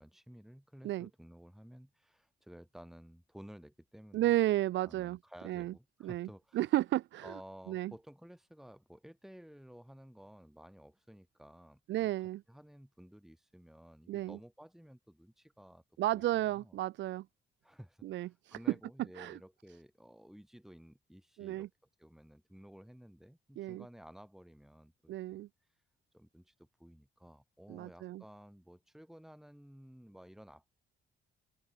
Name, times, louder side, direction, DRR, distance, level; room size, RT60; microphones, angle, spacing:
voice 1, 0.0-4.3 4.8-6.6 7.2-12.1 12.5-15.8 16.1-16.8 17.6-21.7 22.0-25.4 26.1-30.7, equal, ahead, 3.7 m, -54 dB
voice 2, 4.1-5.2 5.4-5.7 6.0-6.3 6.5-7.3 7.7-7.9 11.9-12.4 14.1-14.4 16.0-17.3 18.0-18.7 19.2-19.4 21.4-21.7 23.6-23.8 25.1-25.5 27.7-28.2, right 15 dB, 70° right, 0.4 m, -33 dB
open air
cardioid pair, 90°, 20 cm